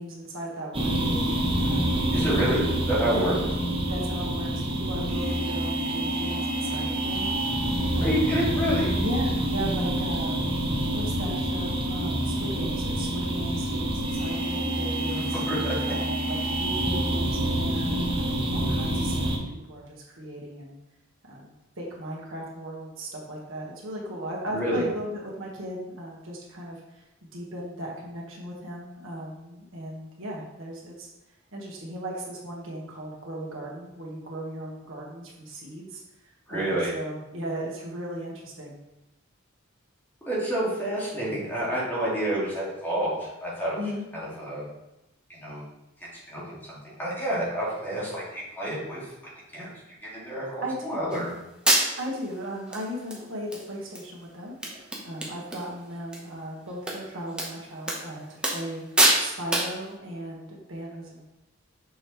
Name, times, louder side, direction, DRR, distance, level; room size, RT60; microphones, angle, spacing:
voice 1, 0.0-2.0 2.6-3.4 3.8-10.4 10.9-15.4 15.9-20.7 21.2-31.1 31.5-36.0 36.5-38.8 43.7-44.0 50.6-51.1 52.0-58.2 58.5-61.2, equal, 80° right, -3 dB, 1.5 m, -37 dB
sound 1, 0.7-19.4, right 1 dB, 30° right, 0.9 m, -27 dB
voice 2, 2.1-3.4 8.0-8.9 15.3-15.8 24.5-24.8 36.5-36.9 40.2-43.8 44.1-44.6 45.3-45.6 46.3-49.1 49.5-49.7 50.0-51.3, right 1 dB, 10° left, -7 dB, 2.1 m, -28 dB
sound 2, 51.1-51.2 51.7-52.2 52.7-52.8 53.1-53.6 54.0-54.1 54.3-54.4 54.6-55.6 55.9-56.2 56.9-57.0 57.4-57.5 57.9-58.0 58.4-58.7 59.0-59.2 59.5-59.8, right 1 dB, 5° right, 1.0 m, -24 dB
6.3 x 5.1 x 3.1 m, 0.96 s
head